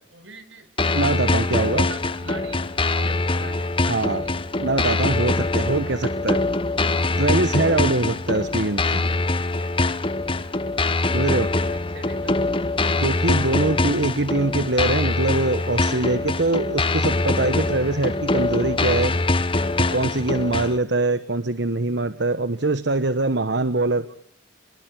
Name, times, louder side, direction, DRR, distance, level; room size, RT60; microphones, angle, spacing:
voice 1, 0.1-0.7 1.0-1.1 1.6-4.4 11.4-12.9 13.4-13.6, right 3 dB, 80° right, 10 dB, 4.9 m, -42 dB
sound 1, 0.8-20.8, left 2 dB, 30° left, 1.2 m, -23 dB
voice 2, 0.9-1.9 3.9-4.3 4.6-6.5 7.2-9.0 11.1-11.5 13.0-19.2 19.8-24.1, right 2 dB, 65° right, 12 dB, 1.2 m, -23 dB
28.5 x 20.5 x 9.6 m, 0.66 s
head